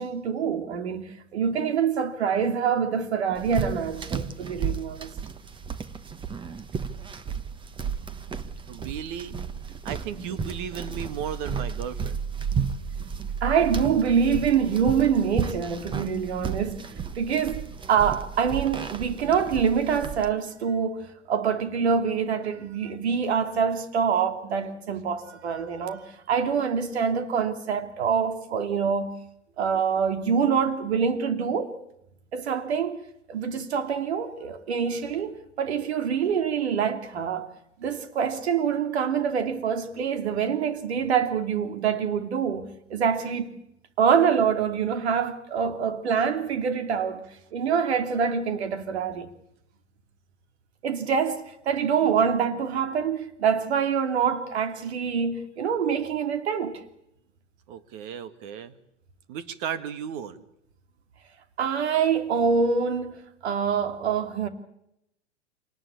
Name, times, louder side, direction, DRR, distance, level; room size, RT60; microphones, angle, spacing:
voice 1, 0.0-5.1 10.2-10.3 13.4-29.1 29.6-31.7 32.3-37.5 37.8-43.5 44.0-47.3 47.5-49.3 50.8-56.8 61.6-64.5, right 6 dB, 65° right, 2.9 m, -25 dB
sound 1, 3.3-20.3, right 6 dB, 15° right, 1.3 m, -33 dB
voice 2, 8.7-9.4 9.8-12.2 57.7-58.7 59.3-60.4, right 8 dB, 45° right, 2.2 m, -35 dB
26.5 x 19.5 x 8.7 m
figure-of-eight pair, 100°, 35 cm